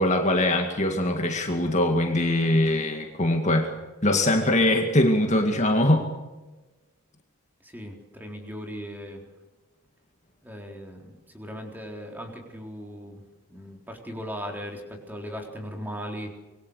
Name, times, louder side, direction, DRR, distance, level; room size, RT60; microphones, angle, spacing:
voice 1, 0.0-3.7 4.0-6.1, left 1 dB, 30° left, 3 dB, 2.2 m, -22 dB
voice 2, 7.6-9.2 10.4-13.2 13.5-16.3, equal, 10° right, 2 dB, 4.0 m, -38 dB
26.0 x 22.5 x 6.6 m, 1.2 s
head